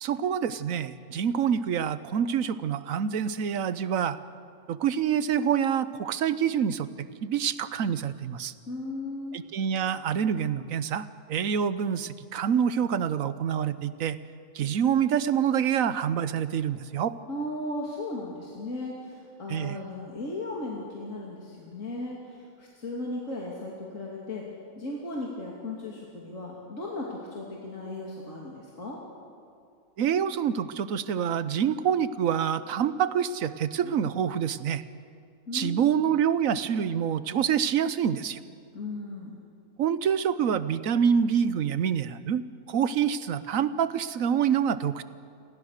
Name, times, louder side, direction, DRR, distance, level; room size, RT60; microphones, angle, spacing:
voice 1, 0.0-4.2 4.7-8.5 9.3-14.2 14.5-17.1 19.5-19.8 30.0-34.8 35.5-38.4 39.8-45.0, right 8 dB, 80° right, 14 dB, 1.3 m, -26 dB
voice 2, 8.7-9.4 17.3-24.4 24.8-29.0 35.5-36.1 38.7-39.4, left 2 dB, 70° left, -3 dB, 3.1 m, -36 dB
29.5 x 22.5 x 6.6 m, 2.3 s
omnidirectional pair, 1.4 m